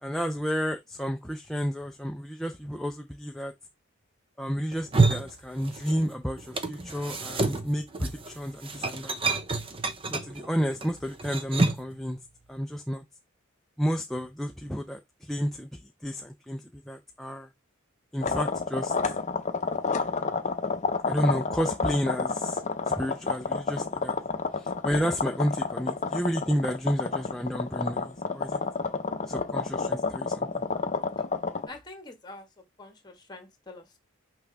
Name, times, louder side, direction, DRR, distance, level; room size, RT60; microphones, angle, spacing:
voice 1, 0.0-3.5 4.4-9.1 10.1-12.2 12.5-13.0 13.8-17.5 18.1-19.1 21.1-22.6 22.9-24.2 24.6-28.6 29.3-30.6, equal, ahead, 0.4 m, -31 dB
sound 1, 4.7-6.1 6.4-11.9, right 3 dB, 25° right, 0.7 m, -28 dB
sound 2, 18.2-31.7, left 4 dB, 35° left, 0.7 m, -29 dB
voice 2, 31.7-34.0, left 2 dB, 20° left, 1.6 m, -46 dB
6.0 x 4.6 x 3.4 m
head